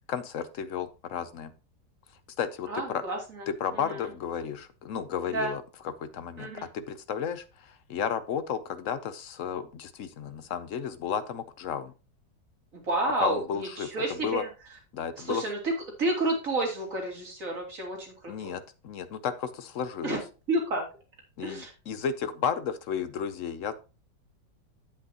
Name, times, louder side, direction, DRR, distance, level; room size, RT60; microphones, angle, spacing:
voice 1, 0.1-1.5 2.4-3.0 3.5-11.9 13.2-14.4 14.9-15.4 18.3-20.2 21.4-23.7, left 7 dB, 60° left, 12 dB, 0.8 m, -33 dB
voice 2, 2.7-3.4 3.9-4.0 5.3-5.5 6.4-6.7 12.7-14.5 15.3-15.7 16.0-18.5 20.0-20.2 20.5-20.8 21.4-21.7, right 2 dB, 45° right, 0 dB, 3.0 m, -30 dB
8.8 x 8.0 x 2.9 m, 0.31 s
omnidirectional pair, 1.9 m